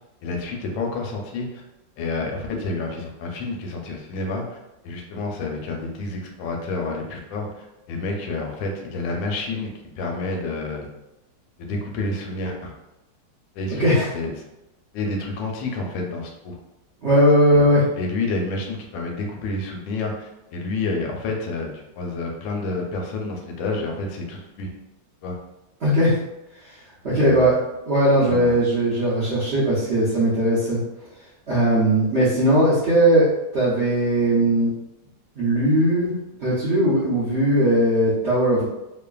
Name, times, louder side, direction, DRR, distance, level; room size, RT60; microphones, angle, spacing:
voice 1, 0.2-1.6 2.0-4.6 4.8-10.9 11.6-12.7 13.5-14.3 14.9-16.6 17.5-24.7 25.2-25.4 27.2-27.5 28.3-28.6, left 3 dB, 90° left, 1 dB, 1.3 m, -29 dB
voice 2, 13.7-14.1 17.0-17.8 25.8-26.2 27.0-27.6 27.9-30.8 31.5-33.3 33.5-34.7 35.4-36.1 36.4-38.7, right 1 dB, 70° right, -10 dB, 0.6 m, -19 dB
3.1 x 2.1 x 2.3 m, 0.96 s
omnidirectional pair, 2.0 m